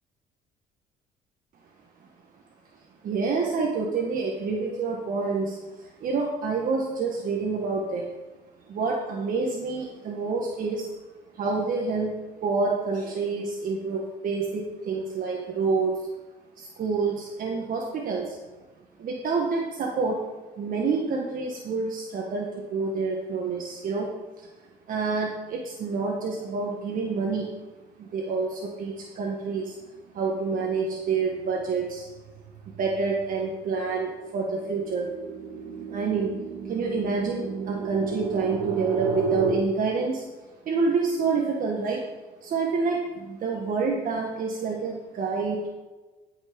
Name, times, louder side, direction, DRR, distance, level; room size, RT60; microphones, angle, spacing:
voice 1, 3.0-8.1 8.7-10.9 11.3-12.1 12.4-15.9 16.6-18.4 19.0-20.2 20.6-24.1 24.9-27.5 28.0-29.7 30.1-32.0 32.8-35.1 35.9-36.3 36.6-40.2 40.6-42.0 42.4-45.7, right 4 dB, 55° right, -1 dB, 1.6 m, -28 dB
sound 1, 29.9-30.2 30.6-39.5, right 5 dB, 80° right, 2.0 m, -33 dB
12.0 x 6.5 x 5.2 m, 1.3 s
cardioid pair, 110°, 17 cm